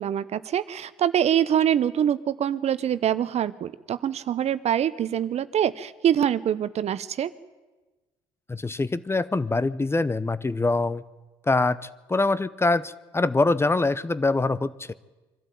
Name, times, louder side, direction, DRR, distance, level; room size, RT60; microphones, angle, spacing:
voice 1, 0.0-7.3, right 10 dB, 55° right, 15 dB, 0.9 m, -24 dB
voice 2, 8.5-11.0 11.5-14.9, left 3 dB, 20° left, 17 dB, 0.8 m, -24 dB
24.0 x 12.5 x 9.2 m, 1.2 s
hypercardioid pair, 65°, 14 cm